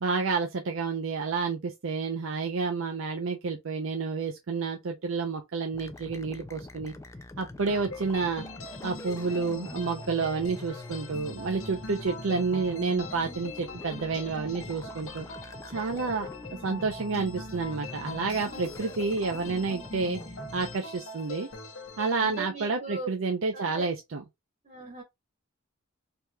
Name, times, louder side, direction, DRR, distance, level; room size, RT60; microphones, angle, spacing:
voice 1, 0.0-6.9 7.4-8.4 8.8-15.3 15.7-16.3 16.6-20.2 20.5-21.5 22.0-24.2, right 4 dB, 65° right, 0.5 m, -30 dB
sound 1, 5.7-20.8, left 2 dB, 15° left, 0.3 m, -44 dB
sound 2, 7.7-22.5, left 2 dB, 65° left, 0.8 m, -43 dB
voice 2, 22.2-23.1 23.5-23.9 24.6-25.0, right 3 dB, 40° right, 1.2 m, -40 dB
3.5 x 2.8 x 2.2 m
head